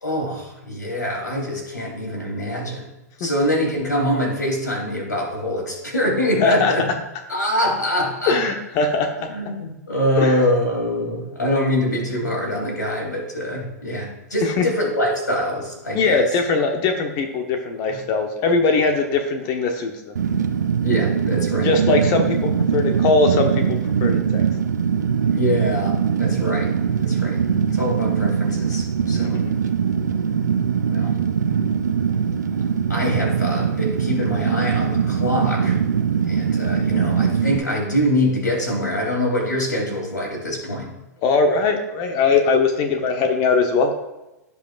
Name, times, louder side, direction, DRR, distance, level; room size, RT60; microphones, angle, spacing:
voice 1, 0.0-2.9 3.2-6.8 7.3-8.4 9.3-16.3 17.9-18.0 20.8-22.1 25.3-26.7 27.0-27.4 27.7-29.4 30.9-31.2 32.9-35.8 36.3-40.9, left 1 dB, 85° left, -1 dB, 3.2 m, -24 dB
voice 2, 6.4-6.7 8.3-9.3 10.2-10.4 14.4-14.7 15.9-20.2 21.6-24.4 29.1-29.5 41.2-43.9, left 4 dB, 40° left, 5 dB, 1.1 m, -21 dB
Fire, 20.1-37.6, right 7 dB, 75° right, 0.7 m, -21 dB
16.5 x 5.5 x 2.5 m, 0.99 s
figure-of-eight pair, 105°, 9 cm